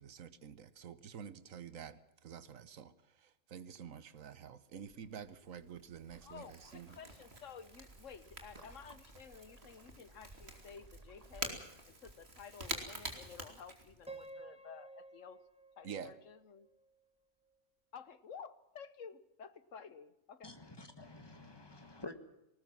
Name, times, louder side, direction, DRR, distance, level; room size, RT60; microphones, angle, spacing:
voice 1, 0.0-7.0 15.8-16.1, right 7 dB, 85° right, 15 dB, 1.4 m, -49 dB
Crackle / Crack, 4.8-14.3, right 2 dB, 50° right, 3.4 m, -48 dB
Waves surf, 6.1-11.9, right 2 dB, 30° right, 2.3 m, -59 dB
voice 2, 6.2-11.6 11.9-15.4 15.8-16.7 17.9-20.5, left 6 dB, 70° left, 14 dB, 1.5 m, -53 dB
Piano, 14.1-17.1, right 3 dB, 5° right, 1.9 m, -53 dB
voice 3, 20.4-22.1, left 2 dB, 20° left, 8 dB, 1.9 m, -49 dB
19.5 x 19.5 x 7.5 m, 0.91 s
omnidirectional pair, 1.4 m